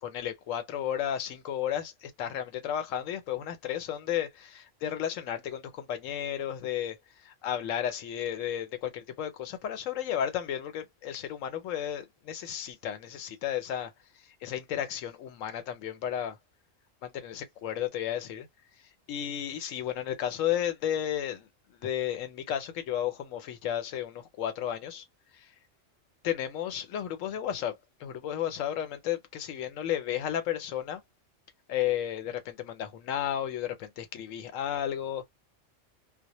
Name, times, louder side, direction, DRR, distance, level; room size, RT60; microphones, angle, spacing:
voice 1, 0.0-13.9 14.4-16.4 17.0-18.5 19.1-25.0 25.3-25.5 26.2-31.0 31.7-35.3, left 10 dB, 85° left, 1.0 m, -33 dB
2.2 x 2.1 x 2.9 m
omnidirectional pair, 1.3 m